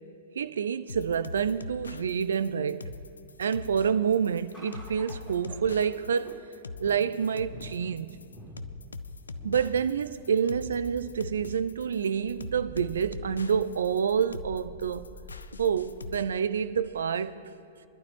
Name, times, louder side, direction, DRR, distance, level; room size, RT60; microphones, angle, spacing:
voice 1, 0.4-2.9 3.4-6.4 6.8-8.2 9.4-15.1 15.6-17.3, right 7 dB, 65° right, 0.6 m, -28 dB
sound 1, 0.9-16.2, left 4 dB, 75° left, 0.5 m, -42 dB
sound 2, 4.5-17.1, right 1 dB, 10° left, 3.8 m, -49 dB
26.0 x 11.5 x 3.0 m
figure-of-eight pair, 100°, 0 cm